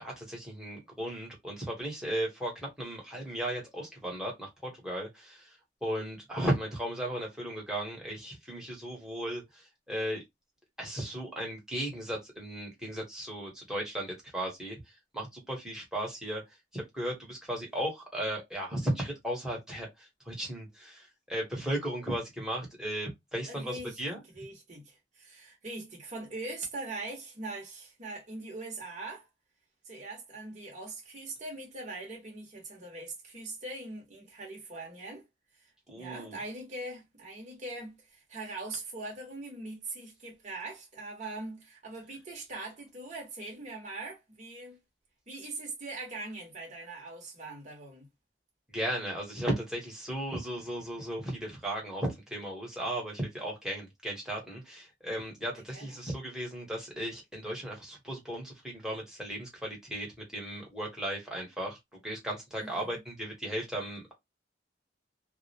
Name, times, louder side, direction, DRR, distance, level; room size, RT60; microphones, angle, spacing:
voice 1, 0.0-5.5 5.8-10.2 10.8-14.8 15.1-16.4 16.7-24.2 35.9-36.4 48.7-60.1 60.3-64.1, right 1 dB, 5° right, 1.0 m, -36 dB
voice 2, 23.5-29.3 29.8-35.3 35.6-44.8 45.3-48.1 55.7-56.0 62.6-62.9, right 2 dB, 40° right, 0.8 m, -42 dB
2.3 x 2.1 x 2.7 m
head